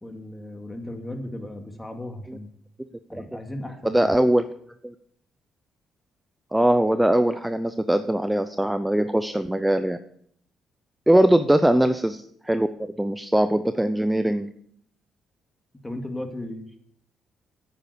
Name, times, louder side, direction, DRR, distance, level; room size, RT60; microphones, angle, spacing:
voice 1, 0.0-2.5 3.1-4.1 15.8-16.8, left 1 dB, 15° left, 4 dB, 2.4 m, -36 dB
voice 2, 3.9-4.5 4.8-4.9 6.5-10.0 11.1-14.5, right 1 dB, 5° right, 10 dB, 0.7 m, -21 dB
9.7 x 9.1 x 6.9 m, 0.67 s
cardioid pair, 90°, 0 cm